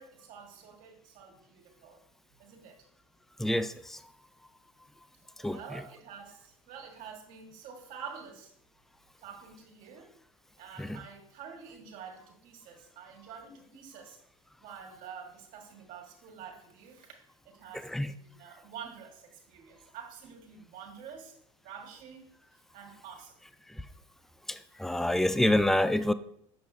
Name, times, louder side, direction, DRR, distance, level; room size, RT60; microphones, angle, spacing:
voice 1, 0.0-2.0 2.4-2.8 5.4-8.5 9.2-10.1 10.6-14.2 14.6-17.2 17.4-21.4 21.6-22.3 22.7-23.4, right 7 dB, 55° right, 0 dB, 1.8 m, -48 dB
voice 2, 3.4-4.0 5.4-5.8 10.8-11.0 17.7-18.1 23.7-23.9 24.5-26.1, left 1 dB, ahead, 13 dB, 0.3 m, -28 dB
7.0 x 6.0 x 2.7 m, 0.67 s
hypercardioid pair, 95°, 17 cm